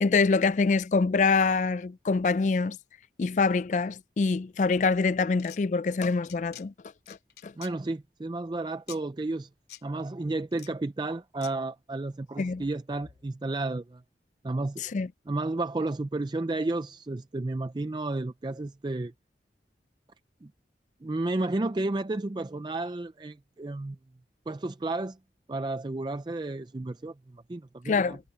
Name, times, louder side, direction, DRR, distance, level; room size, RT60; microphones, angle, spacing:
voice 1, 0.0-2.8 3.2-6.7 7.1-7.2 7.4-7.5 12.4-12.6 14.8-15.1 27.9-28.2, left 4 dB, 45° left, 0.3 m, -25 dB
sound 1, 5.3-5.6 6.0-6.6 7.0-7.7 8.9-9.0 9.7-9.8 10.5-10.7 11.4-11.5, left 12 dB, 65° left, 2.7 m, -46 dB
voice 2, 7.6-9.5 9.8-14.0 14.4-14.9 15.3-19.1 20.4-20.5 21.0-24.0 24.5-25.2 25.5-28.2, right 2 dB, 25° right, 0.4 m, -32 dB
head